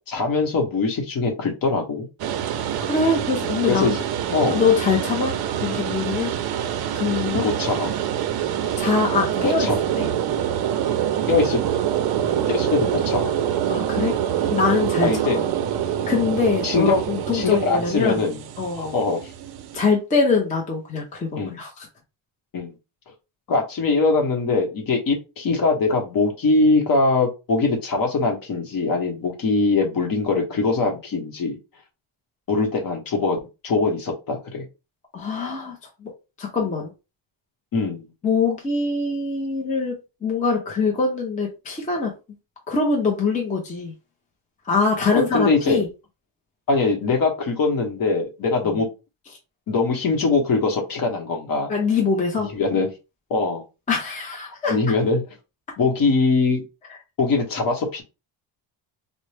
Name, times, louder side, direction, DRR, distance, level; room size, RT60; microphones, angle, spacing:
voice 1, 0.1-2.1 3.7-4.0 4.3-4.6 7.3-7.9 9.4-9.8 11.3-11.6 12.5-13.6 15.0-15.4 16.0-16.1 16.6-17.0 17.3-18.4 18.7-19.3 21.4-21.6 22.5-22.7 23.5-31.6 32.5-33.4 33.6-34.6 36.6-36.7 37.7-38.1 45.1-45.8 46.7-48.9 49.7-51.7 52.5-52.9 53.3-53.6 54.6-55.2 55.8-56.6 57.2-58.0, left 3 dB, 45° left, 1.1 m, -22 dB
sound 1, 2.2-19.8, right 10 dB, 55° right, 0.5 m, -25 dB
voice 2, 2.8-4.0 4.5-6.3 6.9-7.5 8.8-9.7 10.0-10.1 13.7-14.2 14.5-15.1 15.3-15.5 16.1-18.2 18.6-19.0 19.7-21.7 35.1-36.1 36.4-36.9 38.2-42.2 42.7-43.9 44.6-45.9 48.6-48.8 51.7-52.5 53.9-54.8, left 4 dB, 15° left, 0.6 m, -23 dB
4.1 x 2.1 x 3.3 m
cardioid pair, 175°, 47 cm